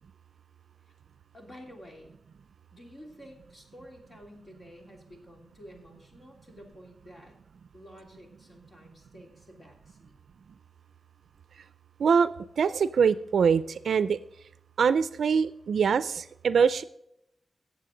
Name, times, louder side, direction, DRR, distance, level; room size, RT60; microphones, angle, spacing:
voice 1, 1.3-2.1 2.7-7.3 7.7-10.2, equal, 30° left, 1 dB, 3.1 m, -50 dB
voice 2, 12.0-12.3 12.6-14.2 14.8-16.8, right 6 dB, 90° right, 15 dB, 0.4 m, -23 dB
17.0 x 7.3 x 3.8 m, 0.79 s
wide cardioid pair, 130°, 0 cm